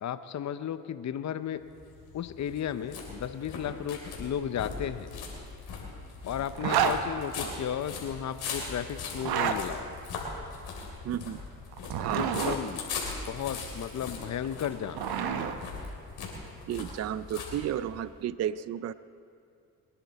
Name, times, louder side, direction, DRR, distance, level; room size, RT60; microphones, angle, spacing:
voice 1, 0.0-1.6 2.1-5.1 6.3-9.9 12.1-12.8 13.3-15.0, left 9 dB, 50° left, 12 dB, 0.7 m, -34 dB
sound 1, 1.6-18.1, left 4 dB, 80° left, 3.1 m, -40 dB
Zipper (clothing), 6.5-7.0 9.1-9.6 11.7-12.6 14.4-15.5, right 8 dB, 80° right, 1.0 m, -28 dB
voice 2, 11.0-11.4 12.0-12.3 16.7-18.9, right 10 dB, 45° right, 16 dB, 0.4 m, -33 dB
23.0 x 10.5 x 4.1 m, 2.4 s
supercardioid pair, 65°, 37 cm